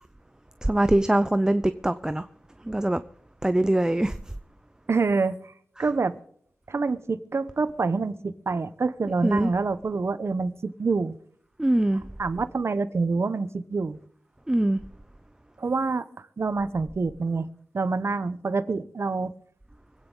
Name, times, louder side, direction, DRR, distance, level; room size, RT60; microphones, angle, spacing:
voice 1, 0.6-2.3 2.7-3.0 3.4-4.2 9.2-9.5 11.6-12.0 14.5-14.8, right 1 dB, 15° right, 0.5 m, -22 dB
voice 2, 4.9-5.5 5.8-6.2 6.7-11.2 12.2-14.0 15.6-17.5 17.7-19.3, right 4 dB, 60° right, 0.9 m, -27 dB
25.5 x 9.2 x 3.9 m
wide cardioid pair, 90°, 5 cm